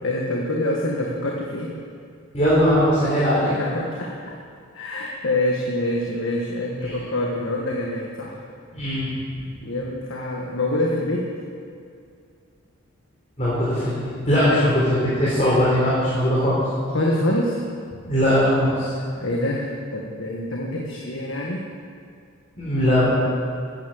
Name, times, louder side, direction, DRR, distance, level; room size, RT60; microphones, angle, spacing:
voice 1, 0.0-1.7 3.5-4.2 4.7-8.4 9.6-11.3 14.4-14.7 16.9-17.6 19.2-21.7, left 1 dB, 70° left, -2 dB, 1.6 m, -26 dB
voice 2, 2.3-3.7 6.8-6.9 8.7-9.1 13.4-16.6 18.1-18.9 22.6-23.1, equal, 35° left, -9 dB, 3.8 m, -20 dB
14.0 x 10.0 x 7.7 m, 2.4 s
head